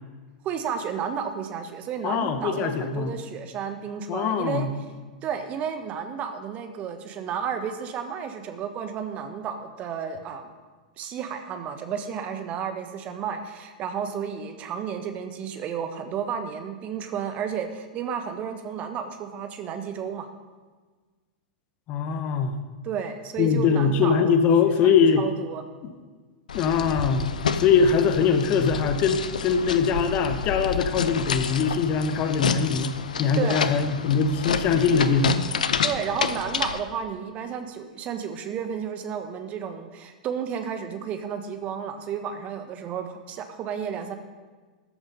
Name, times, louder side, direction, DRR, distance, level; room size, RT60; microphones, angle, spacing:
voice 1, 0.4-4.7 5.2-10.5 11.0-20.3 22.8-24.3 24.8-25.6 33.4-33.7 35.8-44.2, right 7 dB, 35° right, 7 dB, 1.4 m, -32 dB
voice 2, 2.0-3.1 4.1-4.7 21.9-22.6 23.4-25.2 26.5-27.3 27.5-35.4, left 6 dB, 35° left, 9 dB, 1.1 m, -22 dB
sound 1, 26.5-36.8, left 6 dB, 70° left, 0.8 m, -29 dB
14.0 x 7.9 x 5.4 m, 1.4 s
figure-of-eight pair, 95°, 4 cm